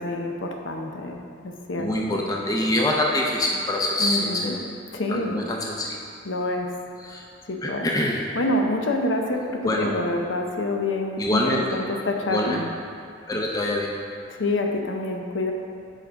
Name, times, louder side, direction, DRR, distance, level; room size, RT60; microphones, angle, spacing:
voice 1, 0.0-2.3 4.0-4.6 4.9-5.4 6.2-6.7 7.5-7.9 8.3-12.7 14.3-15.5, left 2 dB, 70° left, 2 dB, 0.7 m, -27 dB
voice 2, 1.8-4.6 5.1-6.0 7.0-7.2 7.6-8.2 9.3-9.9 11.2-11.8 12.3-12.6 13.3-13.9, left 1 dB, 20° left, -1 dB, 0.5 m, -25 dB
7.4 x 5.3 x 4.5 m, 2.3 s
head